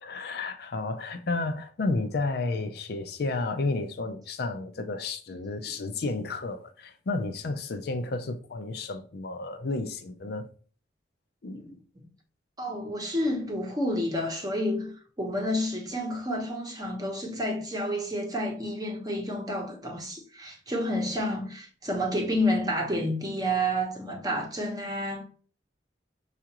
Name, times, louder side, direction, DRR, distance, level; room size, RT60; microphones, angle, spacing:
voice 1, 0.0-10.5 11.4-11.6, left 3 dB, 60° left, 0.5 m, -32 dB
voice 2, 12.6-25.2, equal, 20° right, 0.9 m, -30 dB
5.5 x 2.4 x 2.9 m
head